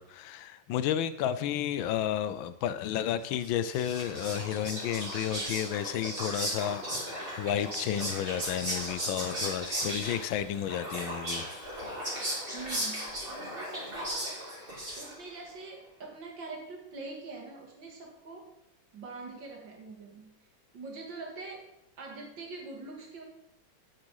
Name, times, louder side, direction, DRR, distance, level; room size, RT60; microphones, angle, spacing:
voice 1, 0.0-11.5, left 10 dB, 85° left, 14 dB, 1.4 m, -32 dB
Whispering, 3.4-15.4, equal, 25° right, 3.4 m, -36 dB
voice 2, 12.5-14.3 15.0-18.5 18.9-20.3 20.7-21.6 22.0-23.2, right 3 dB, 65° right, 0 dB, 2.8 m, -44 dB
9.2 x 7.6 x 4.8 m, 0.81 s
omnidirectional pair, 2.1 m